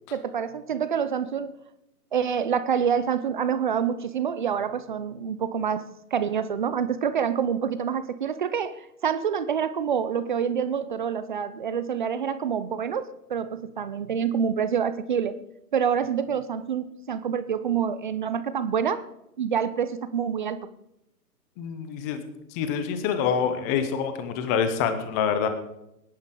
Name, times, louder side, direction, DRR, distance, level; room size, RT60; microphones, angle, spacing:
voice 1, 0.1-1.5 2.1-15.4 15.7-19.0 19.4-20.7, right 7 dB, 30° right, 14 dB, 0.5 m, -27 dB
voice 2, 21.6-22.2 22.5-25.5, left 7 dB, 10° left, 9 dB, 0.6 m, -26 dB
20.0 x 11.0 x 3.8 m, 0.85 s
hypercardioid pair, 140°, 48 cm